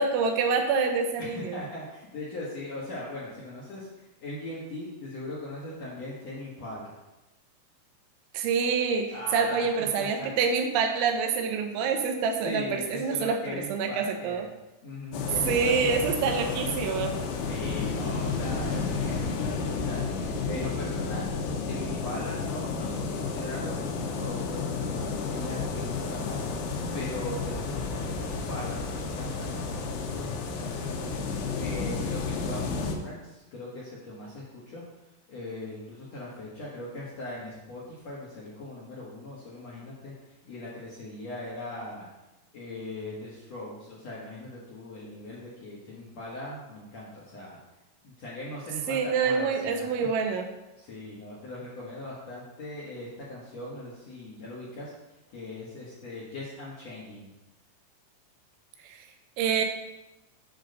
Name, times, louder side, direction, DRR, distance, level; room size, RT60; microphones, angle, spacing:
voice 1, 0.0-1.6 8.3-14.5 15.4-17.1 48.9-50.5 58.8-59.0 59.4-59.7, right 5 dB, 85° right, 5 dB, 3.3 m, -26 dB
voice 2, 1.2-6.9 9.1-10.3 12.4-14.5 14.8-16.6 17.5-21.3 21.6-26.4 26.9-31.2 31.6-34.8 35.3-42.1 42.5-47.6 48.0-50.1 50.8-54.9 55.3-57.3, left 1 dB, 70° left, -6 dB, 1.6 m, -40 dB
sound 1, 15.1-33.0, left 4 dB, 85° left, 3.4 m, -31 dB
8.8 x 3.9 x 6.5 m, 1.0 s
omnidirectional pair, 5.3 m